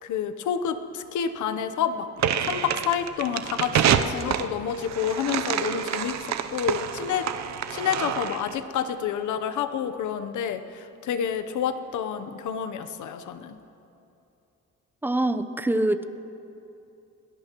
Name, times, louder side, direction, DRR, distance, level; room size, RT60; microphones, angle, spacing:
voice 1, 0.0-2.1 2.4-6.2 6.5-7.3 7.7-13.6, left 8 dB, 75° left, 9 dB, 0.9 m, -29 dB
sound 1, 2.2-8.5, right 9 dB, 65° right, 0.8 m, -27 dB
voice 2, 15.0-16.0, right 1 dB, 5° right, 10 dB, 0.7 m, -24 dB
22.5 x 18.5 x 3.1 m, 2.8 s
cardioid pair, 90°, 30 cm